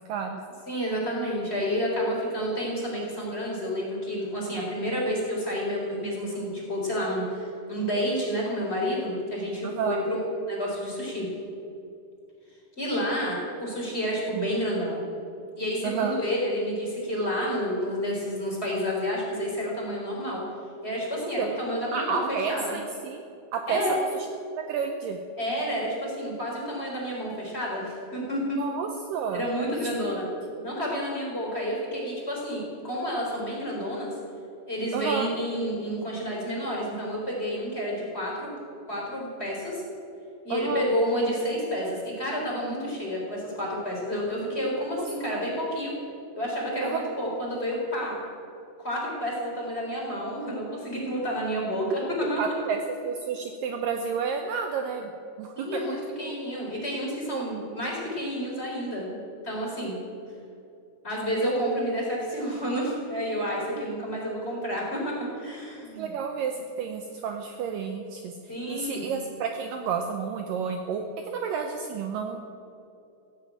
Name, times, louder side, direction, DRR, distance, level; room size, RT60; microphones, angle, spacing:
voice 1, 0.1-0.4 9.6-10.0 15.8-16.2 21.4-21.6 21.9-23.2 23.5-24.3 24.7-25.2 28.6-29.4 29.8-30.2 30.6-30.7 34.9-35.3 40.5-40.8 45.0-45.4 46.8-47.1 51.9-52.0 52.4-55.1 55.4-56.4 57.3-57.5 63.8-64.0 66.0-72.4, right 6 dB, 75° right, 4 dB, 2.2 m, -31 dB
voice 2, 0.7-10.2 10.5-11.3 12.8-15.0 15.5-20.4 20.8-22.7 23.7-24.0 25.4-28.6 29.3-30.3 30.6-34.1 34.7-38.5 38.9-39.8 40.4-45.9 46.4-48.2 48.8-51.9 52.3-52.4 55.6-59.2 59.4-60.0 61.0-66.1 68.5-69.1, equal, 15° left, -4 dB, 3.6 m, -30 dB
15.5 x 9.6 x 8.8 m, 2.6 s
omnidirectional pair, 4.6 m